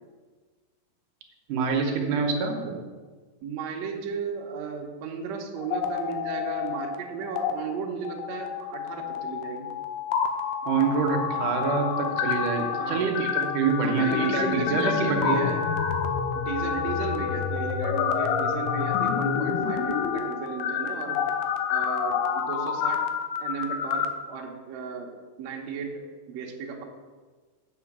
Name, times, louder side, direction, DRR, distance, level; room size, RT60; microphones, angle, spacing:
voice 1, 1.5-2.8 10.6-15.4, right 5 dB, 70° right, 2 dB, 2.1 m, -26 dB
voice 2, 3.4-9.7 12.8-13.1 13.8-15.6 16.3-21.2 21.7-23.1 23.4-26.8, right 5 dB, 85° right, 0 dB, 1.5 m, -35 dB
sound 1, 5.6-7.0 7.2-7.5 8.0-24.1, left 7 dB, 80° left, 2.6 m, -28 dB
7.9 x 5.7 x 7.2 m, 1.4 s
omnidirectional pair, 4.8 m